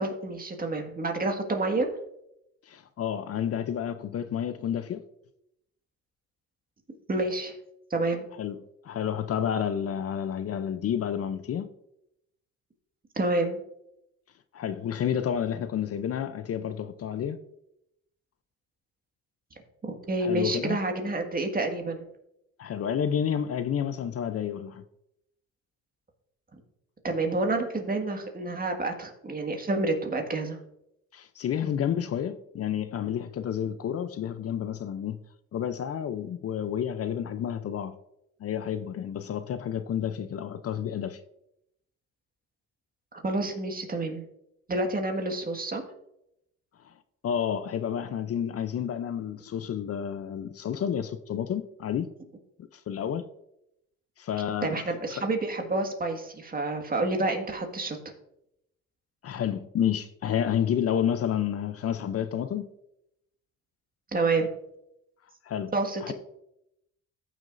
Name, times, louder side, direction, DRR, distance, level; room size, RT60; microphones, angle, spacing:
voice 1, 0.0-1.9 7.1-7.5 7.9-8.3 13.1-13.6 19.8-22.1 27.0-30.6 43.1-44.2 44.7-45.8 54.6-58.0 64.1-64.5 65.7-66.1, right 2 dB, 30° right, 1.7 m, -28 dB
voice 2, 2.7-5.0 8.4-8.6 8.8-11.7 14.5-17.4 20.2-20.8 22.6-24.8 31.1-35.2 35.5-37.9 38.4-41.2 47.2-52.1 52.7-53.3 54.2-54.8 55.1-55.2 59.2-62.7 65.4-65.7 66.0-66.1, left 9 dB, 50° left, 0.6 m, -30 dB
14.5 x 6.1 x 2.6 m
cardioid pair, 90°, 30 cm